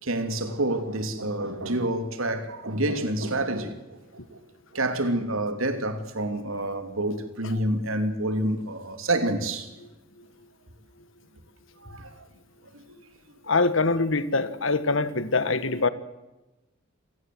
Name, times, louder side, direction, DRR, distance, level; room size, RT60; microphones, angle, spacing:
voice 1, 0.0-3.7 4.3-4.4 4.7-9.7 11.8-12.1 12.9-13.0, right 1 dB, 85° right, 3.0 m, -28 dB
voice 2, 13.5-15.9, left 3 dB, 70° left, 1.5 m, -24 dB
27.0 x 18.0 x 7.8 m
head